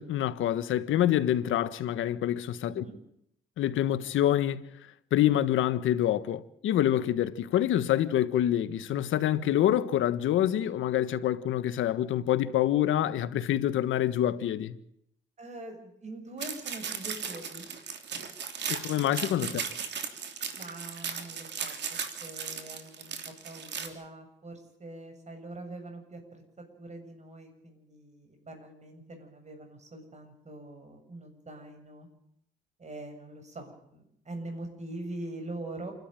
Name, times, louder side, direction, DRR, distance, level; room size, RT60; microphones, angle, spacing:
voice 1, 0.0-2.8 3.6-4.7 5.1-14.8 18.7-19.6, left 12 dB, 80° left, 1.4 m, -26 dB
voice 2, 2.7-3.0 15.4-17.7 19.4-19.6 20.5-32.1 32.8-35.9, right 2 dB, 35° right, 7.4 m, -43 dB
sound 1, 16.4-23.9, right 6 dB, 60° right, 3.3 m, -36 dB
28.0 x 12.5 x 9.0 m
cardioid pair, 90°, 20 cm